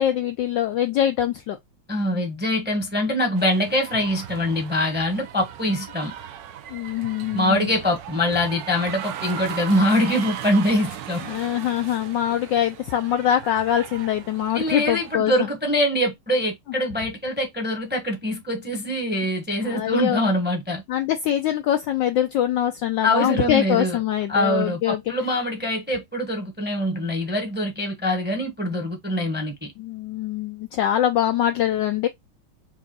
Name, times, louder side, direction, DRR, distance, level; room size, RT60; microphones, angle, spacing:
voice 1, 0.0-1.6 6.7-7.7 11.3-15.3 19.6-20.2 20.9-25.0 29.8-32.1, left 11 dB, 75° left, 1.0 m, -23 dB
voice 2, 1.9-6.1 7.3-11.2 14.5-20.8 23.0-24.0 24.3-29.7, left 1 dB, 5° right, 0.8 m, -24 dB
sound 1, 3.4-15.2, right 10 dB, 85° right, 0.8 m, -37 dB
4.7 x 2.5 x 3.9 m
omnidirectional pair, 2.4 m